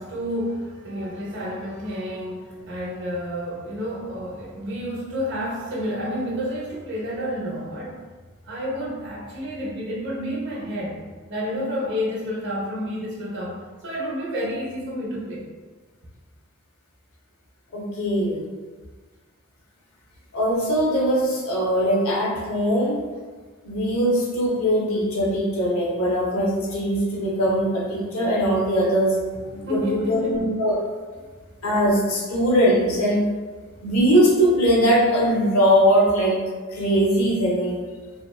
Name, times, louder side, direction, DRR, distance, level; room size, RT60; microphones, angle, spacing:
voice 1, 0.0-8.0 8.4-11.0 11.3-15.5 29.5-30.5, equal, 55° right, -5 dB, 0.7 m, -30 dB
voice 2, 17.7-18.4 20.3-23.0 23.6-29.2 29.4-30.7 31.6-33.2 33.8-36.4 36.7-37.8, equal, 80° left, -3 dB, 0.7 m, -21 dB
2.7 x 2.1 x 2.2 m, 1.4 s
head